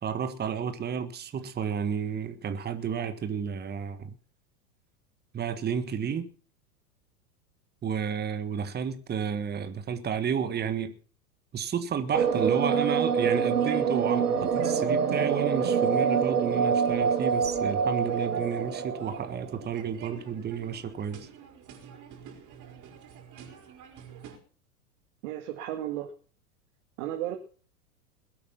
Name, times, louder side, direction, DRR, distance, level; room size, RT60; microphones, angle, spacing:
voice 1, 0.0-4.2 5.3-6.3 7.8-10.9 11.5-21.3, right 7 dB, 20° right, 1.5 m, -31 dB
sound 1, 12.1-19.7, right 6 dB, 80° right, 2.4 m, -26 dB
sound 2, 13.6-24.4, right 8 dB, 40° right, 4.7 m, -49 dB
voice 2, 25.2-26.1 27.0-27.4, right 12 dB, 55° right, 2.2 m, -34 dB
21.0 x 8.6 x 5.8 m
hypercardioid pair, 95°, 46 cm